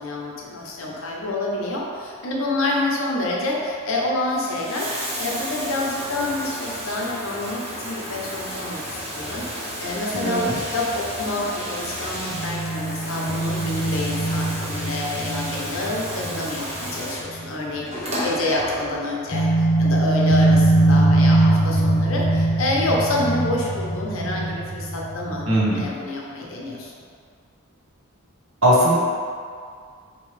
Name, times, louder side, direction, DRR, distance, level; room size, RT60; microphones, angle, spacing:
voice 1, 0.0-25.4 25.7-26.9, left 2 dB, 75° left, -3 dB, 0.7 m, -27 dB
Bathtub (filling or washing), 4.2-19.2 20.3-20.4, equal, 30° right, 0.7 m, -32 dB
voice 2, 10.1-10.6 25.5-25.9 28.6-29.0, right 1 dB, 75° right, -6 dB, 1.0 m, -19 dB
sound 1, 12.3-17.7 18.0-18.1 19.3-25.9, right 2 dB, 30° left, 0.4 m, -22 dB
4.5 x 3.1 x 3.2 m, 2.1 s
head